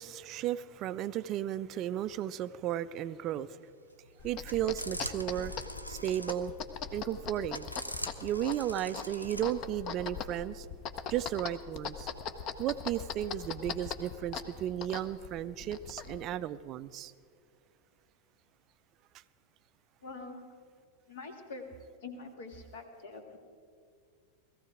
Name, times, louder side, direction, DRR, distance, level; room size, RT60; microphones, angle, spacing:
voice 1, 0.0-3.6 4.2-5.5 5.9-6.5 6.9-7.7 8.2-10.7 11.1-12.1 12.6-17.1, right 11 dB, 35° right, 0.3 m, -34 dB
sound 1, 3.7-9.6, equal, 85° left, 0.7 m, -43 dB
sound 2, 4.2-16.3, left 6 dB, 35° left, 0.9 m, -41 dB
voice 2, 20.0-20.4 21.1-21.7 22.0-23.4, left 3 dB, 55° left, 1.9 m, -45 dB
18.0 x 14.5 x 4.9 m
figure-of-eight pair, 90°, 0 cm